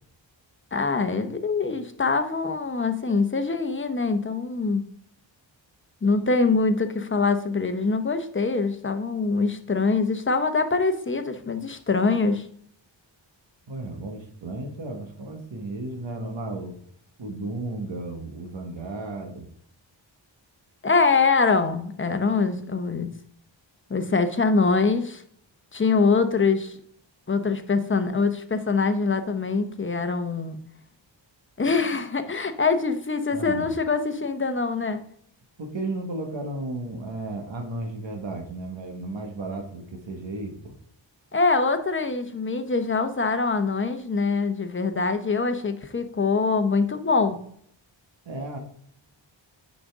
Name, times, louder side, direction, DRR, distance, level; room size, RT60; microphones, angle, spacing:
voice 1, 0.7-4.9 6.0-12.5 20.8-23.1 23.9-25.2 25.7-26.8 27.3-30.6 31.6-35.0 41.3-47.4, left 4 dB, 25° left, 8 dB, 0.8 m, -24 dB
voice 2, 13.7-16.8 17.2-19.5 33.3-33.7 35.6-40.7 48.2-48.6, right 2 dB, 70° right, 3 dB, 1.6 m, -34 dB
9.9 x 5.3 x 3.6 m, 0.65 s
wide cardioid pair, 110°, 47 cm